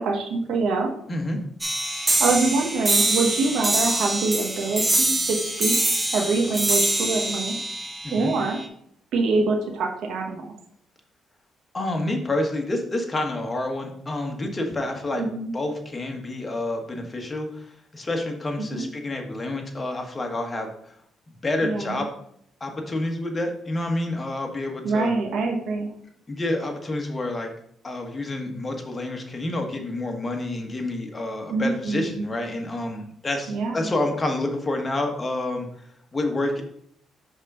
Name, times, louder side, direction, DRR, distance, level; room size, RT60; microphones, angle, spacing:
voice 1, 0.0-0.9 2.2-5.7 6.1-7.6 8.1-8.6 9.1-10.5 15.1-15.5 18.7-18.9 21.6-22.0 24.8-25.9 31.5-32.2 33.5-33.8, right 3 dB, 75° right, 1 dB, 1.0 m, -25 dB
voice 2, 1.1-1.4 8.0-8.3 11.7-15.2 15.5-20.9 21.4-22.1 22.6-25.1 26.3-27.5 27.8-35.7 36.1-36.6, left 2 dB, 25° left, 3 dB, 1.3 m, -28 dB
sound 1, 1.6-8.6, right 2 dB, 20° right, 1.2 m, -24 dB
5.3 x 3.7 x 5.4 m, 0.68 s
cardioid pair, 90°, 0 cm